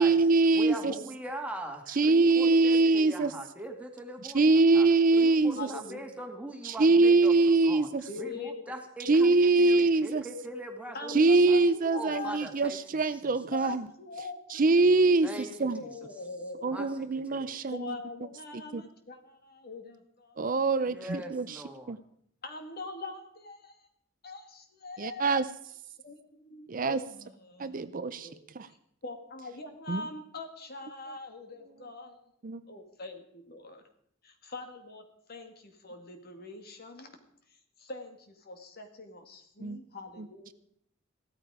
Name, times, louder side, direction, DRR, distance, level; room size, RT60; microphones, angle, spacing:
voice 1, 0.0-0.9 2.0-3.3 4.2-5.7 6.6-8.0 9.0-10.2 11.1-13.8 14.5-15.3 15.6-15.8 16.6-18.0 18.7-18.8 20.4-21.6 21.9-22.0 25.0-25.5 26.7-27.0 27.6-28.3 28.5-28.7 29.9-30.0 32.4-32.6 39.6-39.8 40.2-40.3, right 3 dB, 45° right, 13 dB, 0.5 m, -23 dB
voice 2, 0.5-4.5 4.7-4.9 5.1-7.9 8.2-11.2 11.5-11.6 11.9-12.8 13.0-13.6 15.2-16.0 16.7-17.5 20.9-22.0, right 1 dB, 5° right, 2 dB, 2.2 m, -41 dB
voice 3, 5.5-6.2 8.1-8.7 10.9-12.4 13.5-14.9 15.7-16.9 17.7-20.4 22.4-23.9 24.2-25.5 26.0-28.4 28.7-28.8 29.0-32.2 32.7-33.8 34.2-37.2 37.5-40.5, left 3 dB, 50° left, 5 dB, 2.2 m, -43 dB
16.0 x 13.5 x 4.9 m, 0.67 s
head